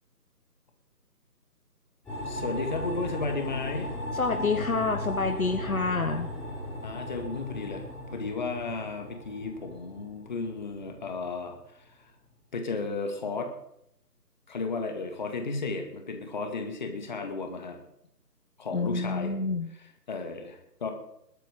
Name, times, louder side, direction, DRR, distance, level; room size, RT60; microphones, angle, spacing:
sound 1, 2.0-11.6, left 1 dB, ahead, 5.5 m, -37 dB
voice 1, 2.3-3.9 6.8-11.9 12.5-13.5 14.5-17.8 18.6-19.3 20.1-20.9, left 3 dB, 25° left, 4 dB, 2.0 m, -34 dB
voice 2, 4.1-6.3 18.7-19.7, left 4 dB, 55° left, 8 dB, 1.4 m, -28 dB
21.0 x 9.2 x 5.2 m, 0.76 s
figure-of-eight pair, 160°, 49 cm